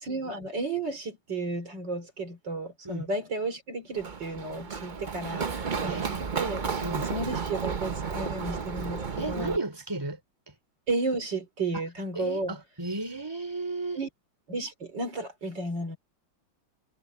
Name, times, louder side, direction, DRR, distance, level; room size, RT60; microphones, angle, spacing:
voice 1, 0.0-6.6 7.0-9.6 10.9-12.6 13.9-14.1 14.5-16.0, right 2 dB, 55° right, 4.2 m, -33 dB
Run, 3.9-9.6, right 5 dB, 70° right, 0.4 m, -32 dB
voice 2, 5.8-6.2 6.8-7.1 9.2-10.2 12.1-14.0, right 2 dB, 10° right, 3.9 m, -34 dB
omnidirectional pair, 2.4 m